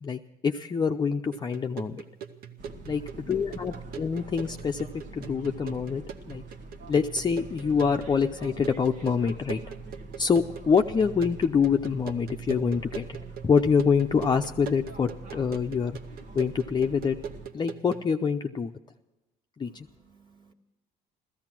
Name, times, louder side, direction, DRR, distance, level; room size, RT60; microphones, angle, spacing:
voice 1, 0.0-2.0 2.9-4.9 5.1-6.0 6.3-6.4 6.9-9.6 10.2-13.0 13.4-16.0 16.3-17.2 17.5-18.7 19.6-19.9, left 6 dB, 25° left, 4 dB, 0.6 m, -25 dB
sound 1, 1.3-18.1, right 7 dB, 60° right, 1.0 m, -42 dB
sound 2, 2.6-17.5, right 2 dB, 80° right, 1.6 m, -45 dB
voice 2, 2.9-3.7 19.6-20.5, right 4 dB, 30° right, 2 dB, 1.7 m, -60 dB
15.0 x 14.5 x 6.0 m, 0.99 s
cardioid pair, 110°, 17 cm